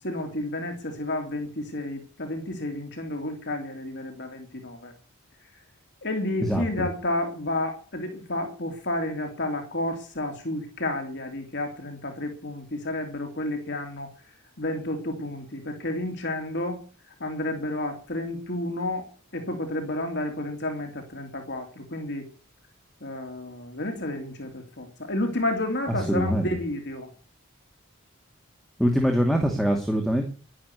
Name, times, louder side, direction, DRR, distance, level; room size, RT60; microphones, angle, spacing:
voice 1, 0.0-4.9 6.0-14.1 14.6-16.8 17.1-22.3 23.0-27.1, left 1 dB, 55° left, 4 dB, 3.1 m, -31 dB
voice 2, 6.4-6.9 26.1-26.5 28.8-30.2, equal, ahead, 2 dB, 2.5 m, -23 dB
12.0 x 11.5 x 8.3 m, 0.38 s
head